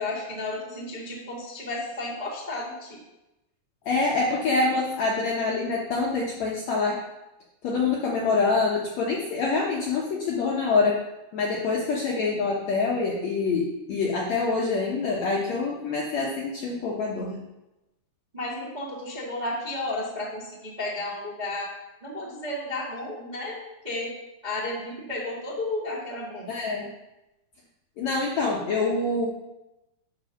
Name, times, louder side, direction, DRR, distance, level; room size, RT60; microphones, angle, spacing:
voice 1, 0.0-3.0 18.3-21.7 22.0-24.1 24.4-26.5, left 2 dB, 20° right, -7 dB, 1.1 m, -33 dB
voice 2, 3.9-7.0 7.6-11.0 11.3-17.4 26.5-26.9 28.0-29.3, left 3 dB, 65° left, -3 dB, 1.7 m, -25 dB
11.5 x 4.0 x 5.8 m, 0.96 s
omnidirectional pair, 4.5 m